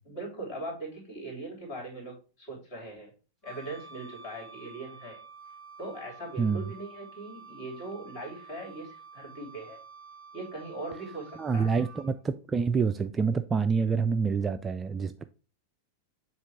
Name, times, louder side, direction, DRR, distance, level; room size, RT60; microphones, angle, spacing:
voice 1, 0.0-3.1 3.4-5.2 5.8-9.8 10.3-11.8, right 2 dB, 40° left, 3.2 m, -40 dB
Wind instrument woodwind instrument, 3.4-12.1, right 5 dB, 15° left, 2.2 m, -50 dB
voice 2, 6.4-6.7 11.4-15.2, right 5 dB, 20° right, 0.3 m, -27 dB
7.3 x 3.0 x 4.7 m
figure-of-eight pair, 90°, 0 cm